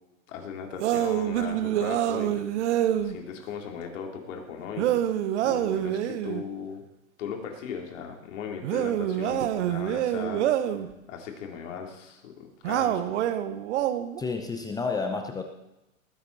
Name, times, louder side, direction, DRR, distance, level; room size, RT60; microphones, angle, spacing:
voice 1, 0.3-2.5 3.0-5.0 5.4-6.8 7.2-10.5 11.1-13.2, left 6 dB, 60° left, 3 dB, 3.5 m, -38 dB
sound 1, 0.8-3.2 4.8-6.4 8.6-10.9 12.6-14.2, right 11 dB, 55° right, 1.2 m, -26 dB
voice 2, 14.2-15.4, left 4 dB, 10° left, 4 dB, 0.8 m, -30 dB
20.0 x 9.7 x 4.2 m, 0.95 s
hypercardioid pair, 130°, 42 cm